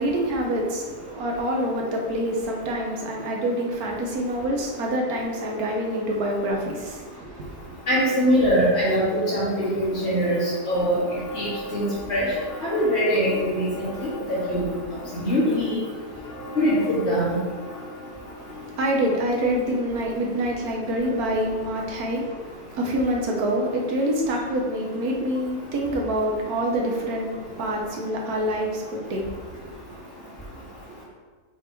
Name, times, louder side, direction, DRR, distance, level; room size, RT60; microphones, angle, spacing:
voice 1, 0.0-7.5 18.4-29.3, right 1 dB, 75° right, 0 dB, 1.5 m, -26 dB
voice 2, 7.9-11.0 11.3-12.3 12.6-14.6 15.1-15.8 16.6-17.4, equal, 45° left, -12 dB, 2.0 m, -23 dB
sound 1, 10.8-19.4, left 1 dB, 60° left, 1.4 m, -40 dB
5.9 x 4.1 x 4.5 m, 1.5 s
omnidirectional pair, 1.6 m